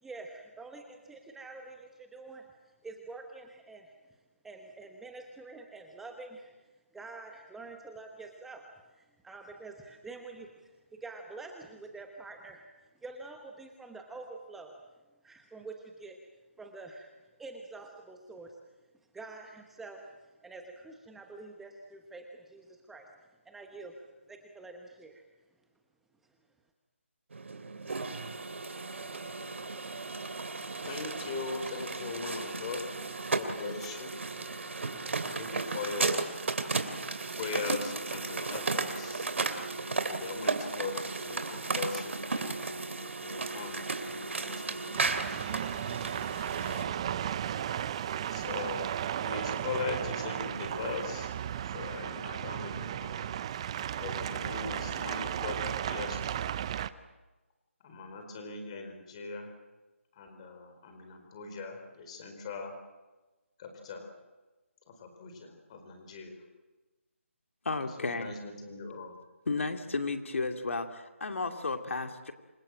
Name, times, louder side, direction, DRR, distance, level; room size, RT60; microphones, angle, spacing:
voice 1, 0.0-2.5 2.8-3.9 4.4-6.5 6.9-12.7 13.0-14.7 15.2-16.2 16.6-17.1 17.4-18.6 19.1-20.0 20.4-23.1 23.4-25.2, right 3 dB, 5° right, 3 dB, 1.1 m, -47 dB
sound 1, 27.3-46.8, right 3 dB, 65° right, 3.0 m, -35 dB
voice 2, 30.8-32.8 33.3-34.1 35.3-36.3 37.4-39.3 40.0-42.7 43.2-45.0 46.6-47.1 48.3-48.9 49.2-51.3 51.7-53.2 54.0-56.5 57.8-59.5 60.1-62.7 63.6-64.1 64.9-66.4 68.0-69.2, left 4 dB, 25° left, 5 dB, 4.6 m, -40 dB
sound 2, 44.9-56.9, right 10 dB, 25° right, 0.7 m, -35 dB
voice 3, 67.6-68.3 69.5-72.3, left 3 dB, 70° left, 5 dB, 2.6 m, -33 dB
27.5 x 22.5 x 7.6 m, 1.2 s
figure-of-eight pair, 165°, 7 cm